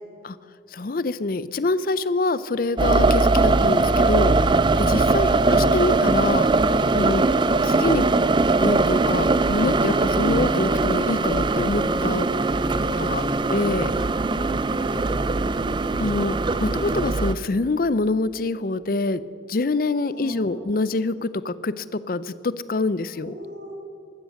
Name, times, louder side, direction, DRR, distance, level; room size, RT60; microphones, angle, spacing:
voice 1, 0.7-4.3 4.8-7.2 7.6-8.1 8.6-12.3 13.0-13.2 13.5-13.9 16.0-19.2 19.5-23.3, left 3 dB, 50° left, 16 dB, 0.5 m, -25 dB
sound 1, 2.8-17.3, right 3 dB, 25° right, 0.4 m, -21 dB
voice 2, 5.1-5.5 12.7-13.5 14.8-15.3 20.1-20.6 23.1-23.7, equal, 85° right, -1 dB, 4.7 m, -37 dB
15.0 x 13.0 x 6.5 m, 2.5 s
head